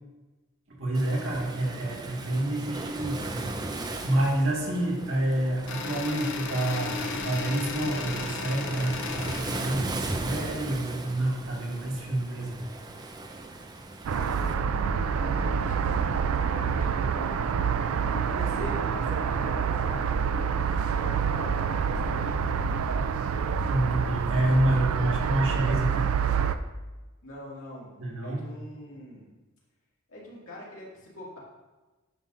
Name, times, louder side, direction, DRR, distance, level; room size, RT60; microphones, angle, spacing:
voice 1, 0.7-3.4 4.0-12.6 23.7-26.1 28.0-28.4, right 1 dB, 65° right, -3 dB, 1.7 m, -28 dB
Waves surf, 0.9-14.5, right 2 dB, 20° right, 0.4 m, -38 dB
voice 2, 2.6-3.2 14.1-14.6 15.1-17.8 18.1-20.1 20.5-22.9 27.2-27.9 28.2-29.3 30.1-31.4, equal, 85° left, -5 dB, 2.1 m, -43 dB
sound 1, 5.7-9.7, left 4 dB, 60° left, 0.6 m, -35 dB
sound 2, 14.0-26.6, right 6 dB, 80° right, 0.3 m, -27 dB
9.2 x 5.7 x 2.5 m, 1.2 s
head